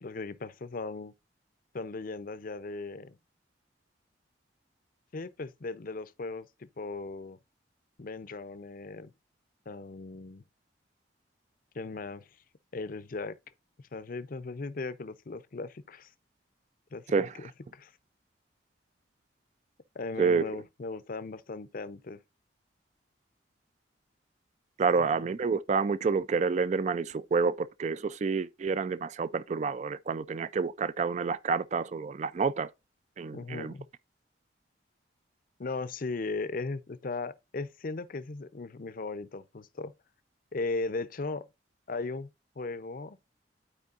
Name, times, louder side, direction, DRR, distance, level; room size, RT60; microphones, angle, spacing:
voice 1, 0.0-1.1 1.7-3.2 5.1-7.4 8.0-9.1 9.7-10.4 11.7-12.3 12.7-13.4 13.9-16.1 16.9-17.9 19.9-22.2 25.0-25.1 33.3-33.9 35.6-39.9 40.5-41.5 41.9-42.3 42.6-43.2, left 3 dB, 50° left, 0.6 m, -37 dB
voice 2, 24.8-32.7 33.2-33.7, right 5 dB, 40° right, 0.4 m, -28 dB
12.0 x 4.5 x 2.5 m
head